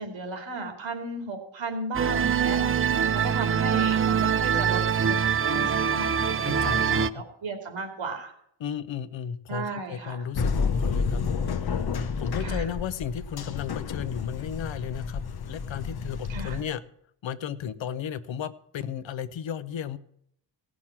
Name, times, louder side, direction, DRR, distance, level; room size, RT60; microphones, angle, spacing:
voice 1, 0.0-8.3 9.5-10.2 12.4-12.7 16.3-16.6, right 3 dB, 90° right, 5 dB, 3.0 m, -35 dB
sound 1, 1.9-7.1, right 7 dB, 30° right, 0.4 m, -24 dB
voice 2, 6.4-7.2 8.6-11.2 11.5-11.9 12.2-16.8 17.2-20.0, left 8 dB, 80° left, 13 dB, 0.9 m, -34 dB
sound 2, 10.3-16.6, left 5 dB, 55° left, 0.9 m, -30 dB
17.5 x 6.2 x 7.3 m, 0.70 s
wide cardioid pair, 155°, 45 cm